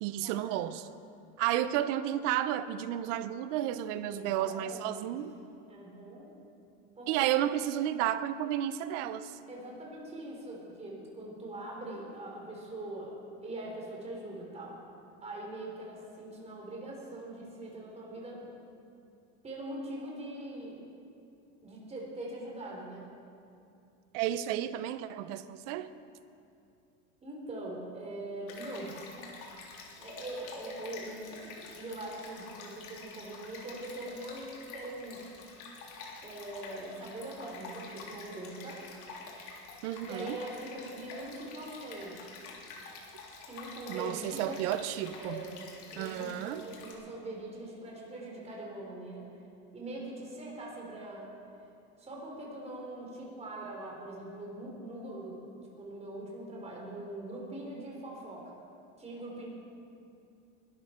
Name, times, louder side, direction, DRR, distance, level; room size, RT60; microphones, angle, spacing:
voice 1, 0.0-0.9 1.4-5.3 7.1-9.4 24.1-25.9 39.8-40.4 43.9-45.4 46.0-46.6, right 12 dB, 80° right, 13 dB, 0.9 m, -32 dB
voice 2, 4.1-5.1 5.7-6.3 7.0-7.4 9.5-13.1 13.4-14.8 15.2-18.5 19.4-20.8 21.6-23.1 27.2-29.0 30.0-35.3 36.2-38.8 40.1-42.3 43.4-44.6 45.2-49.3 49.7-51.3 52.0-55.4 55.8-58.6 59.0-59.5, right 1 dB, 20° right, -2 dB, 3.7 m, -42 dB
Stream, 28.5-46.9, left 4 dB, 55° left, 3.6 m, -48 dB
21.5 x 13.0 x 4.5 m, 2.6 s
supercardioid pair, 135°, 36 cm